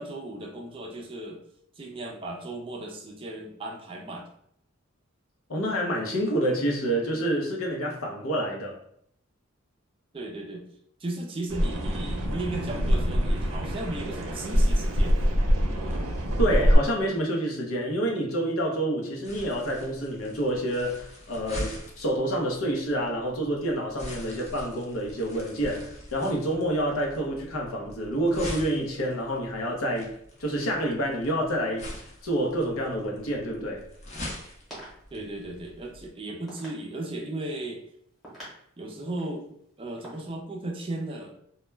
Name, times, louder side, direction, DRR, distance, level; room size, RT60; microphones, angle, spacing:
voice 1, 0.0-1.4 1.7-4.3 10.1-10.7 11.0-15.2 35.1-37.8 38.8-39.5 39.8-41.3, right 2 dB, 25° right, 0.4 m, -36 dB
voice 2, 5.5-8.8 16.4-30.1 30.4-31.9 32.2-33.9, right 1 dB, 90° left, 0.6 m, -28 dB
sound 1, 11.5-16.8, equal, 80° right, 0.5 m, -25 dB
sound 2, 19.2-36.1, left 1 dB, 35° left, 0.5 m, -43 dB
sound 3, 33.8-40.2, right 1 dB, ahead, 0.9 m, -49 dB
2.2 x 2.1 x 3.1 m
head